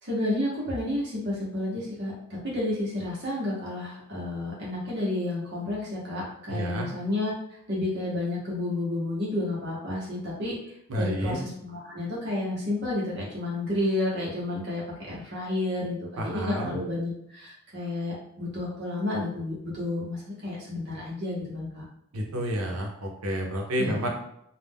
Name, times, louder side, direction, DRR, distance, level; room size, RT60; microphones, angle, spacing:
voice 1, 0.0-10.5 10.9-21.8 23.8-24.0, left 1 dB, 50° right, -5 dB, 0.9 m, -31 dB
voice 2, 6.5-6.9 10.9-11.4 16.2-16.7 22.1-24.1, equal, 80° right, 1 dB, 0.6 m, -30 dB
2.4 x 2.1 x 3.4 m, 0.74 s
head